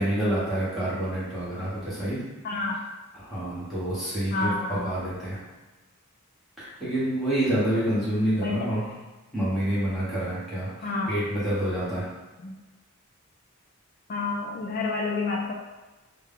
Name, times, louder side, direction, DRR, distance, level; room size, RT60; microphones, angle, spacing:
voice 1, 0.0-2.2 3.2-5.4 6.6-8.9 9.3-12.1, right 1 dB, ahead, -12 dB, 1.4 m, -28 dB
voice 2, 2.4-2.8 4.3-5.0 8.3-8.7 10.8-11.1 12.4-12.5 14.1-15.5, left 3 dB, 40° left, -1 dB, 0.3 m, -29 dB
3.2 x 2.2 x 3.7 m, 1.2 s
head